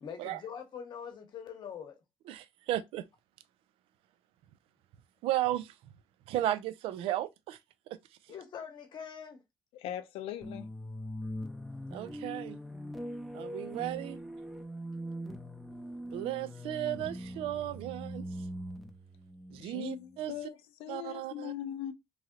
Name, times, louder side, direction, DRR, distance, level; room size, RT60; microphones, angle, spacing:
voice 1, 0.0-1.9 8.3-9.4, left 7 dB, 50° left, 0.9 m, -43 dB
voice 2, 2.3-3.0 5.2-5.7 6.3-7.6 7.9-8.0 11.9-12.6 13.3-14.2 16.1-18.2 19.5-20.3 20.9-21.5, right 13 dB, 80° right, 0.4 m, -34 dB
voice 3, 9.7-10.7 19.6-21.9, left 11 dB, 80° left, 0.4 m, -40 dB
sound 1, 10.4-20.3, equal, ahead, 0.5 m, -42 dB
3.1 x 2.7 x 2.3 m
cardioid pair, 115°, 10 cm